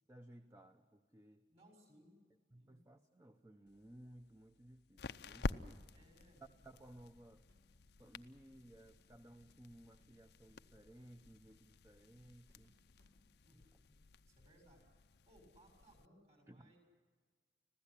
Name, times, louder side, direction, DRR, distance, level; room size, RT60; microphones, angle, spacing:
voice 1, 0.1-1.5 2.5-5.9 6.6-7.4 8.0-12.8 16.5-16.7, right 1 dB, 15° right, 7 dB, 0.8 m, -59 dB
voice 2, 1.5-2.2 2.5-2.8 5.9-6.4 13.4-14.0 14.2-14.8 15.2-16.8, right 1 dB, 35° right, 4 dB, 6.6 m, -66 dB
sound 1, 3.7-16.1, left 3 dB, 65° left, 0.6 m, -50 dB
Drum kit / Snare drum / Bass drum, 6.0-13.2, equal, 80° right, 7.5 m, -76 dB
25.5 x 16.0 x 10.0 m, 1.5 s
head